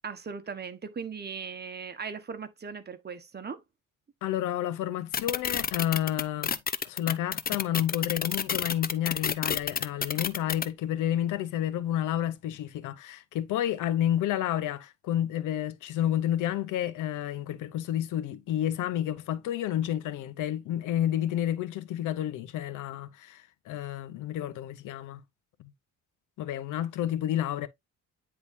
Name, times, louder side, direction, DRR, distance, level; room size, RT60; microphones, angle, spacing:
voice 1, 0.0-3.6, right 6 dB, 35° right, 1.2 m, -38 dB
voice 2, 4.2-6.6 6.8-25.2 25.6-25.7 26.4-27.7, left 11 dB, 85° left, 0.8 m, -30 dB
sound 1, 5.1-10.7, left 7 dB, 30° left, 0.6 m, -29 dB
9.6 x 3.8 x 2.6 m
cardioid pair, 90°, 30 cm